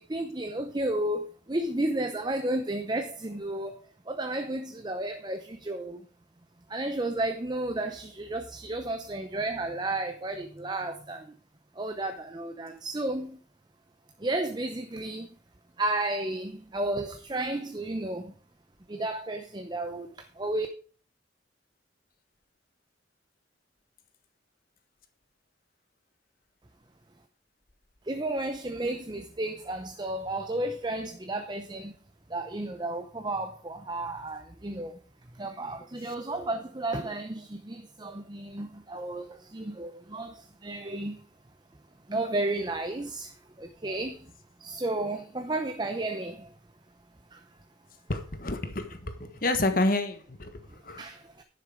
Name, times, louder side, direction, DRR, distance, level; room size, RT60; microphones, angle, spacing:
voice 1, 0.1-3.8 4.1-6.0 6.7-11.2 11.8-13.3 14.2-15.3 15.8-18.3 18.9-20.1 20.4-20.7 28.1-31.9 32.3-34.9 35.4-39.3 39.5-40.3 40.6-41.1 42.1-43.3 43.6-44.2 44.6-46.4 51.0-51.4, right 2 dB, 25° right, 0.7 m, -32 dB
voice 2, 48.1-51.0, left 2 dB, 50° left, 1.5 m, -29 dB
11.0 x 6.6 x 4.9 m
head